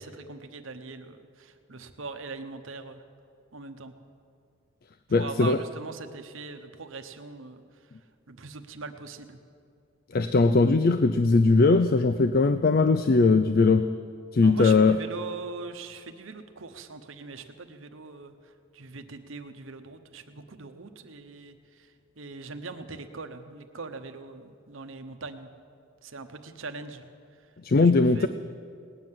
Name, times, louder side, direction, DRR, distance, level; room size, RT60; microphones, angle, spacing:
voice 1, 0.0-3.0 3.5-3.9 5.1-7.9 8.3-9.4 14.4-25.5 26.0-27.0 27.3-27.5 27.8-28.3, right 3 dB, 70° right, 7 dB, 1.0 m, -41 dB
voice 2, 5.1-5.6 10.1-13.9 14.3-15.0 27.6-28.3, left 3 dB, 45° left, 11 dB, 0.4 m, -20 dB
18.5 x 9.8 x 7.5 m, 2.3 s
head